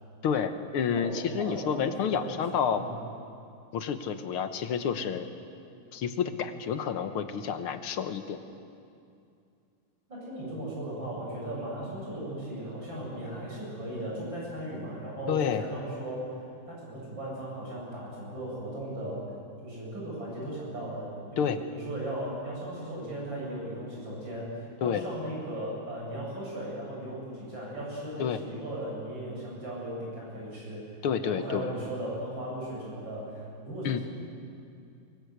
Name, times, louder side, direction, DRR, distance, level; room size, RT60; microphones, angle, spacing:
voice 1, 0.2-2.8 3.7-5.3 5.9-8.4 15.3-15.6 21.4-21.6 24.8-25.1 28.2-28.4 31.0-31.7 33.8-34.0, left 7 dB, 80° left, 9 dB, 2.0 m, -29 dB
voice 2, 1.4-2.4 2.7-2.9 10.1-16.3 16.7-19.2 19.6-30.8 31.2-34.0, right 1 dB, 60° right, -5 dB, 9.0 m, -37 dB
23.5 x 22.0 x 8.1 m, 2.5 s
omnidirectional pair, 2.4 m